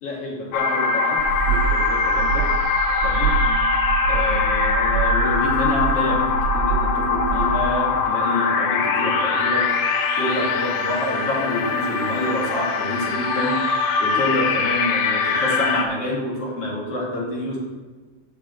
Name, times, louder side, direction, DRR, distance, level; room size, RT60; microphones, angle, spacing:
voice 1, 0.0-2.5 3.0-3.7 4.1-9.8 10.2-13.6 14.0-17.6, left 1 dB, 45° left, -4 dB, 2.9 m, -27 dB
sound 1, 0.5-15.8, left 4 dB, 80° left, 1.7 m, -22 dB
sound 2, 1.2-7.6, right 6 dB, 75° right, 1.6 m, -26 dB
8.7 x 5.4 x 7.7 m, 1.4 s
omnidirectional pair, 4.4 m